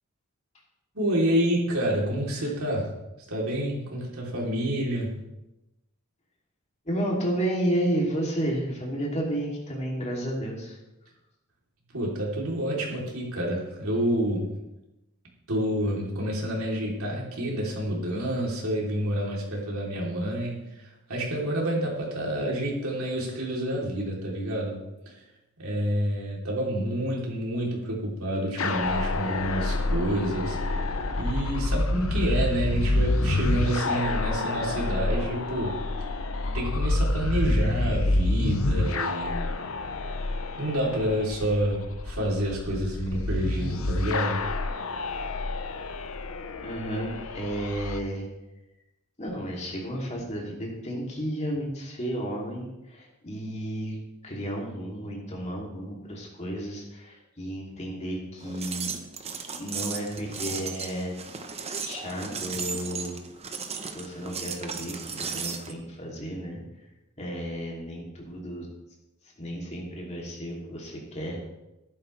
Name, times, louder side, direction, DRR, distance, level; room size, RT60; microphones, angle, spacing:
voice 1, 0.9-2.9 3.3-5.1 11.9-14.5 15.5-25.1 25.6-35.8 36.5-39.4 40.6-44.4, right 1 dB, 75° right, -3 dB, 3.4 m, -28 dB
voice 2, 6.8-10.8 46.6-48.3 49.2-58.9 59.6-61.1 61.8-63.2 63.9-66.9 67.2-68.7 69.2-71.4, right 1 dB, 30° left, -2 dB, 2.9 m, -32 dB
sound 1, 28.6-48.0, left 2 dB, 65° left, 0.8 m, -28 dB
sound 2, 58.4-65.7, right 6 dB, 30° right, 1.0 m, -35 dB
14.5 x 11.5 x 3.3 m, 0.95 s
head